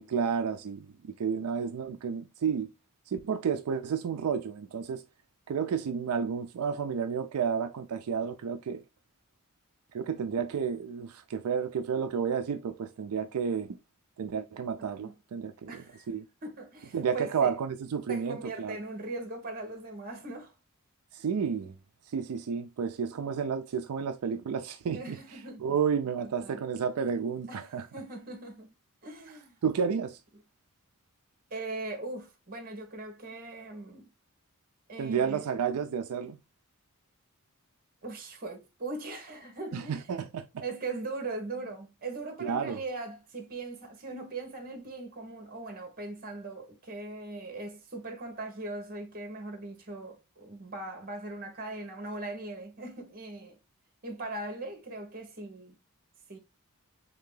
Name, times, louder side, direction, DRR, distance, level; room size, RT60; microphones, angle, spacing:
voice 1, 0.0-2.7 3.1-5.0 5.5-8.8 9.9-13.7 14.2-16.3 16.9-18.8 21.1-21.7 22.1-25.2 25.6-27.9 29.6-30.2 35.0-36.4 39.7-40.5 42.4-42.8, right 6 dB, 90° right, 0.4 m, -31 dB
voice 2, 14.8-15.1 15.7-16.1 16.4-17.5 18.1-20.5 24.9-25.6 26.2-26.6 27.5-28.7 29.0-29.6 31.5-34.1 34.9-35.4 38.0-40.0 40.6-53.6 54.0-55.7 56.3-56.4, right 2 dB, 40° right, 1.1 m, -40 dB
3.5 x 2.8 x 3.7 m
head